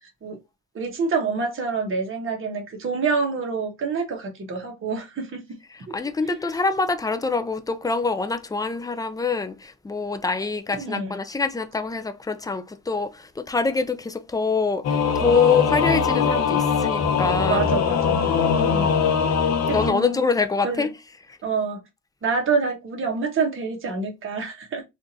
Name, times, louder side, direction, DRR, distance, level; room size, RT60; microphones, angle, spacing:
voice 1, 0.7-5.4 6.2-6.3 10.7-11.2 17.5-18.9 19.7-20.2 20.6-20.9 21.4-21.8 22.2-24.8, right 4 dB, 45° right, 1.2 m, -27 dB
voice 2, 5.7-17.7 19.7-20.9 21.3-21.4, left 4 dB, 10° left, 0.4 m, -25 dB
Singing / Musical instrument, 14.8-19.9, left 6 dB, 60° left, 0.7 m, -21 dB
3.7 x 2.5 x 2.7 m
cardioid pair, 90°, 30 cm